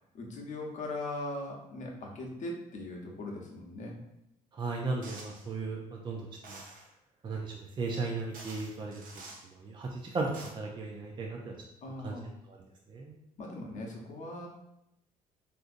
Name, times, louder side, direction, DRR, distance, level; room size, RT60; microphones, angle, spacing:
voice 1, 0.1-4.0 11.8-12.3 13.4-14.5, left 2 dB, 55° left, -1 dB, 0.8 m, -39 dB
voice 2, 4.5-6.6 7.2-9.0 9.6-11.5 12.0-12.2 12.5-12.6 12.9-13.2, right 3 dB, 30° right, -1 dB, 0.4 m, -36 dB
sound 1, 5.0-5.5 6.4-6.9 7.9-8.0 8.3-9.5 10.1-10.5, right 3 dB, 65° right, 0.7 m, -48 dB
3.7 x 2.6 x 2.5 m, 0.84 s
cardioid pair, 90°, 15 cm